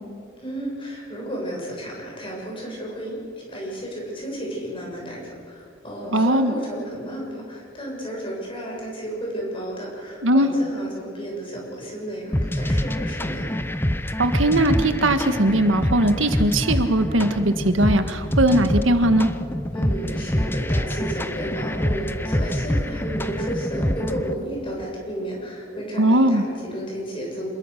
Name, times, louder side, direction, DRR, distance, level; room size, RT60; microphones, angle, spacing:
voice 1, 0.4-3.2 3.5-13.5 19.7-27.5, right 1 dB, 25° left, -2 dB, 7.3 m, -32 dB
voice 2, 6.1-6.5 10.2-10.5 14.2-19.3 26.0-26.4, right 1 dB, 75° right, 8 dB, 1.6 m, -19 dB
sound 1, 12.3-24.3, left 1 dB, 10° left, 0.8 m, -25 dB
27.0 x 21.5 x 6.7 m, 2.3 s
head